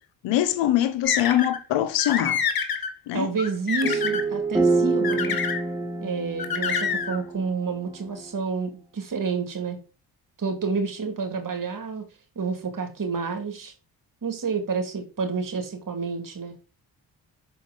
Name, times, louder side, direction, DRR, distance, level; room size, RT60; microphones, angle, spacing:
voice 1, 0.2-2.4 3.1-3.3 3.8-4.0, left 12 dB, 90° left, 0.8 m, -23 dB
sound 1, 1.1-1.6 2.0-2.9 3.4-4.2 5.0-5.6 6.4-7.2, left 6 dB, 55° left, 1.2 m, -27 dB
voice 2, 3.1-5.4 6.0-9.8 10.4-12.1 12.4-13.7 14.2-16.5, right 5 dB, 45° right, 2.0 m, -29 dB
sound 2, 3.8-8.3, right 3 dB, 5° right, 1.7 m, -27 dB
6.1 x 4.5 x 3.8 m
supercardioid pair, 45°, 44 cm